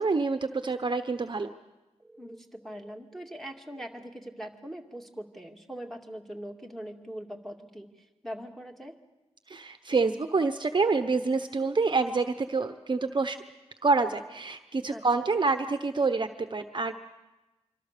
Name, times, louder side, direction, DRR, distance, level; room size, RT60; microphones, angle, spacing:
voice 1, 0.0-1.5 9.5-13.4 13.8-16.9, right 4 dB, 40° right, 8 dB, 1.0 m, -27 dB
voice 2, 2.0-9.0 14.9-15.3, equal, ahead, 3 dB, 2.3 m, -42 dB
25.5 x 25.5 x 6.8 m, 1.1 s
wide cardioid pair, 115°, 12 cm